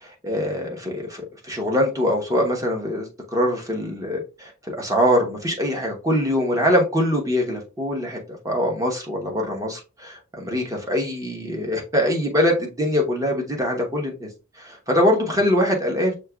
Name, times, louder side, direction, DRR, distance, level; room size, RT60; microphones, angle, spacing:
voice 1, 0.0-3.1 3.3-14.3 14.6-16.1, equal, 15° right, 1.0 m, -23 dB
6.4 x 2.8 x 2.3 m
head